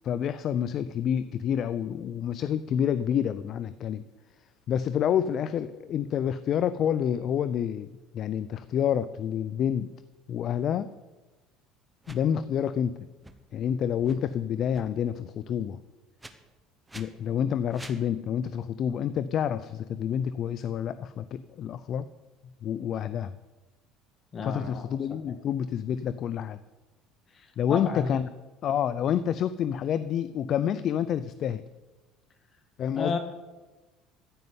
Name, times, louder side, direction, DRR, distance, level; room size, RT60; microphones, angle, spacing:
voice 1, 0.0-4.0 4.7-9.9 10.3-10.9 12.1-13.1 13.5-15.8 16.9-22.1 22.6-23.3 24.4-26.6 27.6-28.2 28.6-31.6 32.8-33.2, left 9 dB, 50° left, 14 dB, 0.5 m, -28 dB
sound 1, 12.0-12.2 13.2-13.3 13.9-14.2 14.7-14.9 16.2-16.3 16.9-17.1 17.7-18.0, right 2 dB, 10° right, 1.2 m, -46 dB
voice 2, 24.3-25.2 27.3-28.2 32.9-33.2, left 4 dB, 35° left, 7 dB, 2.1 m, -33 dB
14.5 x 5.5 x 9.6 m, 1.2 s
supercardioid pair, 115°, 0 cm